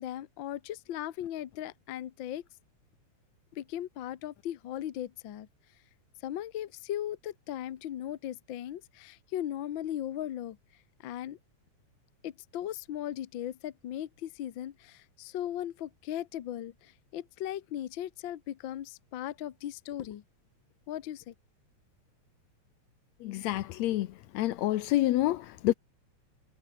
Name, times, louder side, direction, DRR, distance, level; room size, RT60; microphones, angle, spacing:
voice 1, 0.0-2.4 3.5-5.5 6.2-10.6 11.0-11.4 12.2-20.2 20.9-21.3, left 11 dB, 60° left, 1.4 m, -38 dB
voice 2, 23.2-24.1 24.3-25.7, left 15 dB, 75° left, 1.9 m, -28 dB
omnidirectional pair, 3.4 m